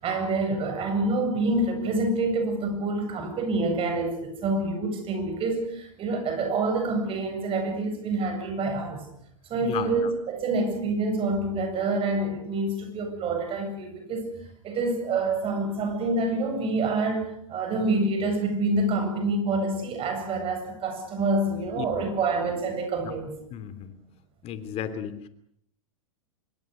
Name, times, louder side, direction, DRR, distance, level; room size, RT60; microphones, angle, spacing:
voice 1, 0.0-9.1 9.5-14.3 14.6-23.5, right 2 dB, 35° right, 5 dB, 7.7 m, -27 dB
voice 2, 9.5-10.1 21.8-21.9 23.0-23.1 23.5-23.9 24.4-25.3, left 9 dB, 35° left, 11 dB, 2.9 m, -34 dB
25.5 x 21.5 x 6.7 m, 0.69 s
hypercardioid pair, 100°, 17 cm